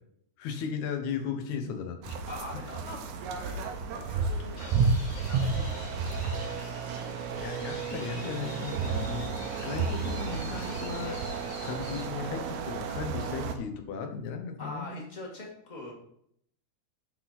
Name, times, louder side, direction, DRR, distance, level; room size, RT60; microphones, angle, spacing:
voice 1, 0.4-2.2 7.3-9.3 9.6-11.2 11.6-15.0, left 6 dB, 75° left, 5 dB, 2.4 m, -36 dB
sound 1, 2.0-13.6, right 5 dB, 90° right, 2.2 m, -32 dB
voice 2, 2.3-4.9 5.1-6.5 14.6-15.9, left 2 dB, 20° left, -1 dB, 1.5 m, -43 dB
sound 2, 4.6-12.0, left 2 dB, 50° left, 3.0 m, -46 dB
sound 3, 8.5-13.1, right 4 dB, 75° right, 2.0 m, -46 dB
11.5 x 4.8 x 4.2 m, 0.69 s
omnidirectional pair, 3.4 m